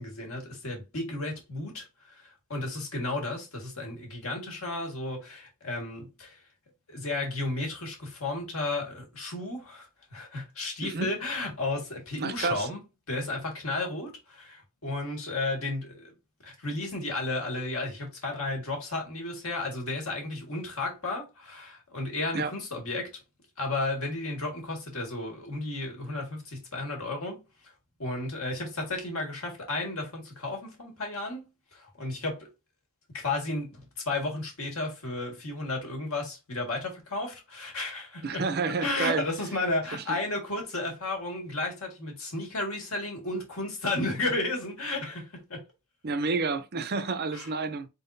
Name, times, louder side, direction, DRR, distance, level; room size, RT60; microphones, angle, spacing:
voice 1, 0.0-6.4 6.9-12.8 13.1-16.1 16.4-23.2 23.6-27.7 28.0-32.5 33.1-38.4 38.8-45.6 47.3-47.5, left 2 dB, 75° left, 1.7 m, -33 dB
voice 2, 12.2-12.7 22.3-22.5 38.2-39.2 40.1-40.2 46.0-47.9, right 4 dB, 45° right, 0.5 m, -29 dB
4.4 x 3.8 x 2.6 m
head